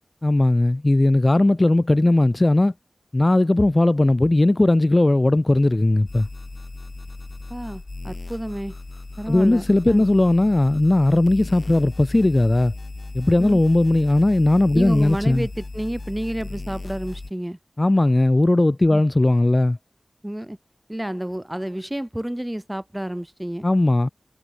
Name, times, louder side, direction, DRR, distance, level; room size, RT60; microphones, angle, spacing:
voice 1, 0.2-2.7 3.1-6.3 9.3-12.7 13.1-15.5 17.8-19.8 23.6-24.1, left 2 dB, 35° left, 1.2 m, -18 dB
sound 1, 6.1-17.3, left 2 dB, 50° left, 2.7 m, -36 dB
voice 2, 7.5-8.8 9.2-10.1 13.4-13.6 14.7-17.6 18.9-19.0 20.2-20.6 20.9-23.6, right 1 dB, 10° right, 6.2 m, -30 dB
wide cardioid pair, 65°, 0 cm